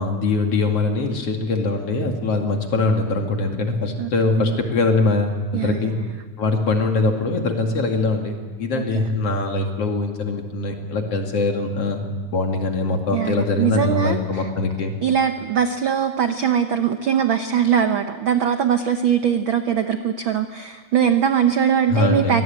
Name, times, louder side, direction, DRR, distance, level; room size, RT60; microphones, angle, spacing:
voice 1, 0.0-6.0 6.4-12.0 12.3-14.9 21.9-22.4, left 3 dB, 50° left, 3 dB, 3.2 m, -22 dB
voice 2, 5.5-6.1 8.7-9.1 13.1-14.5 15.0-22.4, right 8 dB, 65° right, 7 dB, 1.2 m, -21 dB
25.0 x 19.5 x 9.1 m, 1.5 s
omnidirectional pair, 3.6 m